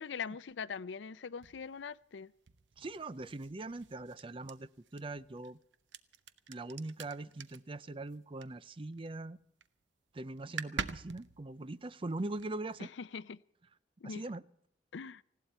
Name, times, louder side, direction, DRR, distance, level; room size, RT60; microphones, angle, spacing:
voice 1, 0.0-2.3 12.8-13.4 14.0-14.2 14.9-15.2, left 6 dB, 90° left, 0.5 m, -42 dB
sound 1, 1.4-9.1 9.4-9.8 10.1-10.2 10.4-12.8, right 5 dB, 85° right, 0.8 m, -46 dB
voice 2, 2.8-5.6 6.5-9.4 10.1-12.9 14.0-14.4, right 2 dB, 30° right, 0.5 m, -41 dB
19.5 x 16.5 x 4.3 m
head